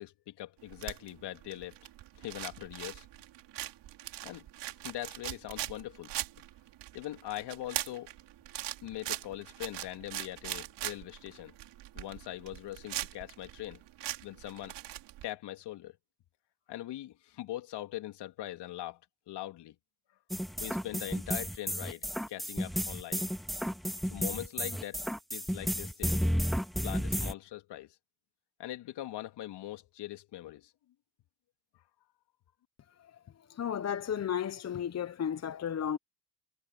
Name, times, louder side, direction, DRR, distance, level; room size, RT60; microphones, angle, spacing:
voice 1, 0.0-1.8 2.2-3.1 4.2-4.5 4.8-6.1 6.9-8.1 8.8-11.5 12.0-13.8 14.2-14.8 15.2-16.0 16.7-19.0 19.3-19.8 20.6-23.2 24.1-25.0 25.3-26.2 26.8-28.0 28.6-30.7, left 14 dB, 55° left, 3.4 m, -41 dB
sound 1, 0.6-15.3, right 14 dB, 60° right, 5.1 m, -41 dB
sound 2, 20.3-27.3, equal, ahead, 2.0 m, -32 dB
voice 2, 33.6-36.0, left 8 dB, 35° left, 1.2 m, -33 dB
supercardioid pair, 80°, 48 cm